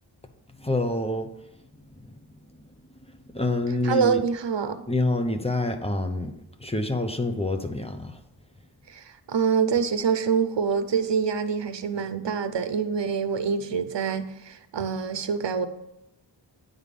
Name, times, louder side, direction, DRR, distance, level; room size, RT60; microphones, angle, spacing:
voice 1, 0.6-1.3 2.1-2.2 3.3-4.2 4.9-6.3 6.6-8.2, left 2 dB, 15° left, 0.7 m, -27 dB
voice 2, 3.8-4.8 8.9-15.7, right 6 dB, 75° right, 0.7 m, -26 dB
9.5 x 3.6 x 6.7 m
wide cardioid pair, 55°, 44 cm